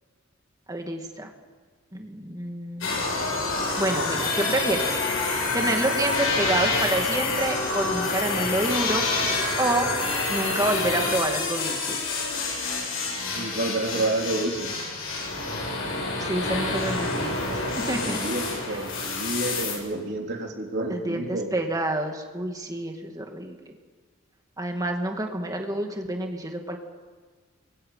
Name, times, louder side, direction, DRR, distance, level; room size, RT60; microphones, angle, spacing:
voice 1, 0.7-1.3 1.9-3.0 3.8-5.0 5.5-9.1 9.6-9.9 10.3-12.0 16.2-18.2 20.9-23.6 24.6-26.8, right 1 dB, 15° right, 3 dB, 2.4 m, -28 dB
sound 1, 2.8-19.8, left 3 dB, 90° left, 7.8 m, -27 dB
voice 2, 13.4-14.8 18.1-21.5, right 2 dB, 55° right, 1 dB, 3.6 m, -29 dB
29.5 x 24.0 x 5.8 m, 1.5 s
head